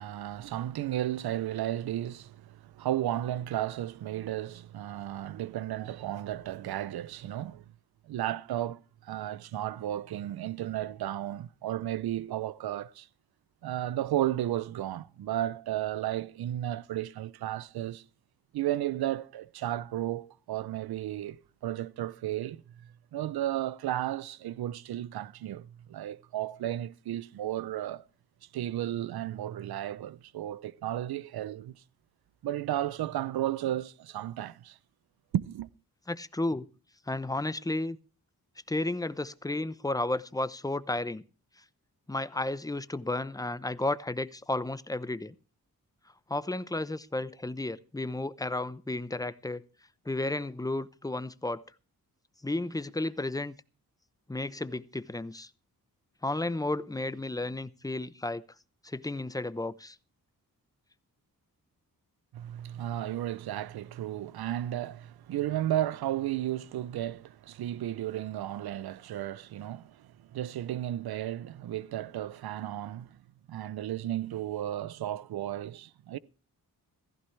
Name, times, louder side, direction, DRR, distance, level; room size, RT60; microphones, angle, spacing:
voice 1, 0.0-7.6 8.0-13.1 13.6-18.0 18.5-28.0 28.5-31.8 32.4-34.8 35.3-35.7 62.3-73.2 73.5-76.2, right 13 dB, 90° right, 0.6 m, -34 dB
voice 2, 36.1-36.7 37.1-38.0 38.7-41.2 42.1-45.3 46.3-49.6 50.1-51.6 52.4-53.5 54.3-55.5 56.2-58.4 58.8-60.0, left 2 dB, 10° left, 0.7 m, -33 dB
16.0 x 15.0 x 3.3 m
cardioid pair, 70°, 36 cm